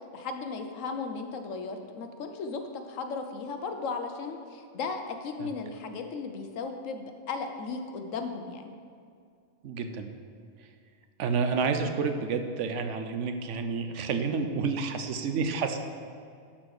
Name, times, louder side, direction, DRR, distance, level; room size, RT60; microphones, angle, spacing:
voice 1, 0.1-8.8, left 4 dB, 85° left, 6 dB, 1.1 m, -36 dB
voice 2, 9.6-10.1 11.2-15.8, right 5 dB, 75° right, 7 dB, 1.0 m, -29 dB
11.5 x 4.3 x 4.8 m, 2.3 s
omnidirectional pair, 1.3 m